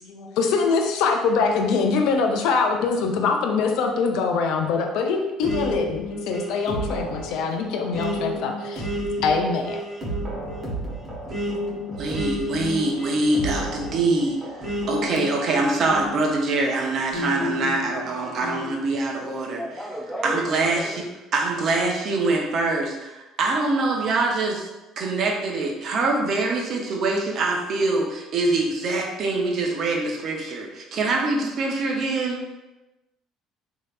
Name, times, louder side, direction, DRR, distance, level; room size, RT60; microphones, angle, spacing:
voice 1, 0.0-8.9 9.2-9.8, left 4 dB, 60° left, 4 dB, 0.3 m, -23 dB
sound 1, 5.4-16.5 17.1-18.7, equal, 35° right, 1.2 m, -31 dB
voice 2, 12.0-14.4 14.9-19.6 20.2-21.0 21.3-24.7 25.0-32.4, right 2 dB, 50° right, 1 dB, 0.6 m, -24 dB
voice 3, 19.5-21.1, equal, ahead, -10 dB, 0.9 m, -33 dB
3.1 x 2.7 x 2.4 m, 1.0 s
figure-of-eight pair, 55°, 0 cm